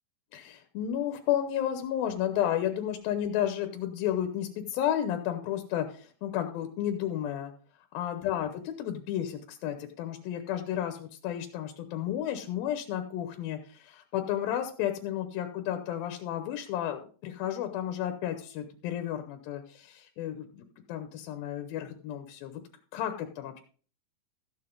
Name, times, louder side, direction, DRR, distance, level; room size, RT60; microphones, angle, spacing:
voice 1, 0.3-7.5 7.9-22.6 22.9-23.6, left 11 dB, 80° left, 7 dB, 2.6 m, -32 dB
14.0 x 7.8 x 3.7 m, 0.42 s
omnidirectional pair, 4.2 m